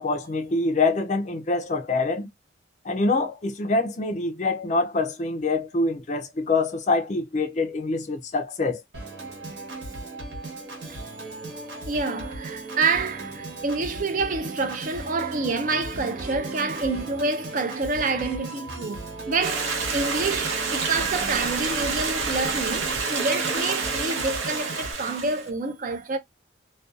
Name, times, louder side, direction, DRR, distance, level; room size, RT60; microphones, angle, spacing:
voice 1, 0.0-2.3 2.9-8.8, left 3 dB, 40° left, 0.4 m, -25 dB
Organ, 8.9-24.9, right 2 dB, 65° right, 1.1 m, -36 dB
voice 2, 11.9-26.2, right 3 dB, 45° right, 0.4 m, -28 dB
Stream, 19.4-25.5, right 4 dB, 85° right, 0.8 m, -28 dB
2.5 x 2.2 x 2.3 m
head